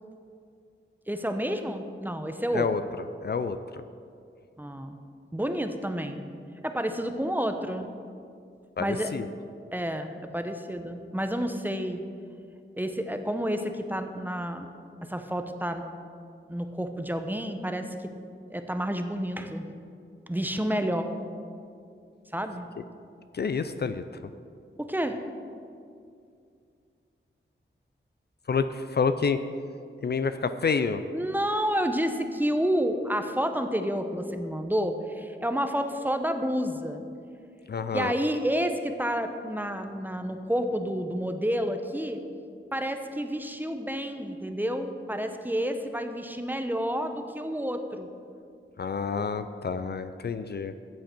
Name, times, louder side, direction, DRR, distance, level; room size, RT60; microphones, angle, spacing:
voice 1, 1.1-2.7 4.6-5.0 5.3-6.2 6.6-7.9 8.8-9.2 9.7-12.0 12.8-14.7 15.0-15.9 16.5-18.1 18.5-19.7 20.3-21.1 22.3-22.7 24.8-25.2 31.1-37.0 37.9-42.2 42.7-48.1, equal, 10° right, 7 dB, 0.8 m, -30 dB
voice 2, 3.2-3.8 8.8-9.3 23.3-24.0 28.5-29.4 30.0-31.0 37.7-38.1 48.8-50.7, left 5 dB, 55° left, 11 dB, 0.4 m, -28 dB
13.5 x 7.7 x 4.4 m, 2.4 s
wide cardioid pair, 75°, 21 cm